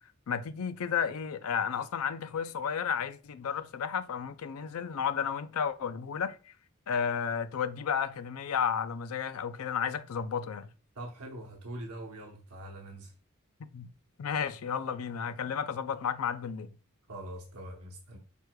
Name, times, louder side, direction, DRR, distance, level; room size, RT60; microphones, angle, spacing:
voice 1, 0.3-6.5 6.9-10.7 13.7-13.9 14.2-16.7, left 7 dB, 80° left, 0.4 m, -32 dB
voice 2, 10.9-13.1 17.1-18.2, right 1 dB, 90° right, 0.9 m, -43 dB
5.0 x 4.7 x 2.2 m
head